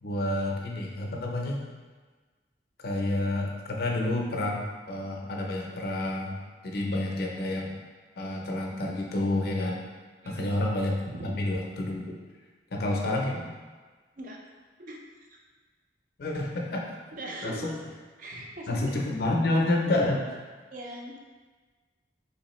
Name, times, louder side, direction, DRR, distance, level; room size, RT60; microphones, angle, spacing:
voice 1, 0.0-1.6 2.8-7.8 8.2-9.8 10.2-11.0 11.2-12.2 12.7-13.5 16.2-16.9 17.4-17.8 18.7-20.4, left 1 dB, 55° left, -1 dB, 0.5 m, -29 dB
voice 2, 10.2-10.6 11.0-11.3 14.2-14.4 14.8-15.0 15.3-15.4 17.1-17.9 18.2-19.0 20.7-21.2, right 1 dB, 45° right, 0 dB, 0.4 m, -40 dB
3.5 x 3.0 x 3.0 m, 1.4 s
head